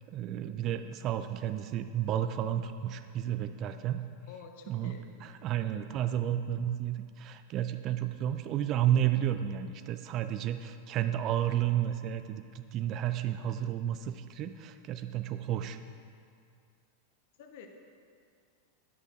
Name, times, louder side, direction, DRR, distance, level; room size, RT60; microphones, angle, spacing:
voice 1, 0.1-4.0 4.7-15.8, right 11 dB, 35° right, 9 dB, 0.3 m, -32 dB
voice 2, 4.3-5.1 17.4-17.7, left 6 dB, 50° left, 4 dB, 0.8 m, -49 dB
11.0 x 8.8 x 2.5 m, 2.3 s
figure-of-eight pair, 90°, 0 cm